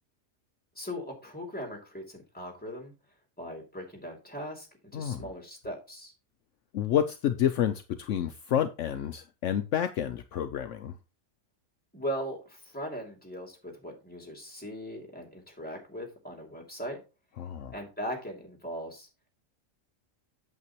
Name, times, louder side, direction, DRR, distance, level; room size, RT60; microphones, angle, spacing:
voice 1, 0.8-2.9 3.4-4.7 4.9-6.1 11.9-17.0 17.7-19.1, equal, 5° left, 2.7 m, -39 dB
voice 2, 4.9-5.2 6.7-10.9 17.4-17.7, left 9 dB, 70° left, 0.9 m, -29 dB
8.4 x 7.6 x 3.1 m
omnidirectional pair, 1.4 m